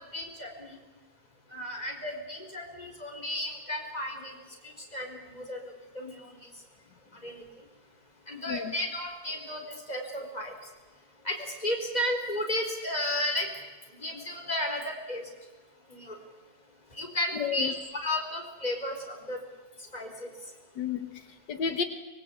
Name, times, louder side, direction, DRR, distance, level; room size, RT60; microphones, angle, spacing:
voice 1, 0.1-0.8 1.5-4.3 4.6-6.5 7.1-7.4 8.3-10.5 11.2-13.5 13.9-15.2 15.9-16.2 16.9-17.7 18.0-19.4 19.9-20.3, left 1 dB, 25° left, 3 dB, 4.5 m, -33 dB
voice 2, 17.3-17.7 20.8-21.8, left 7 dB, 85° left, 8 dB, 2.0 m, -32 dB
24.0 x 21.5 x 8.5 m, 1.2 s
omnidirectional pair, 1.8 m